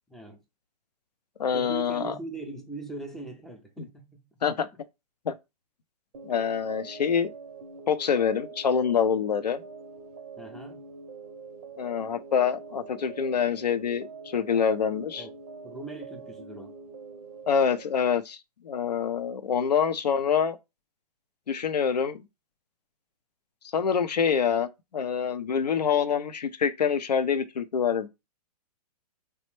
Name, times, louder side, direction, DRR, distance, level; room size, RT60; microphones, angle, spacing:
voice 1, 0.1-0.4 1.5-4.3 10.4-10.8 15.2-15.4 15.6-16.8, right 3 dB, ahead, 0.3 m, -40 dB
voice 2, 1.4-2.1 4.4-4.7 5.3-5.4 6.2-7.3 7.9-9.6 11.8-15.2 17.5-20.6 21.5-22.2 23.7-28.1, left 7 dB, 90° left, 0.5 m, -26 dB
sound 1, 6.1-17.8, right 4 dB, 65° right, 0.6 m, -44 dB
3.2 x 2.0 x 3.0 m
hypercardioid pair, 125°, 20 cm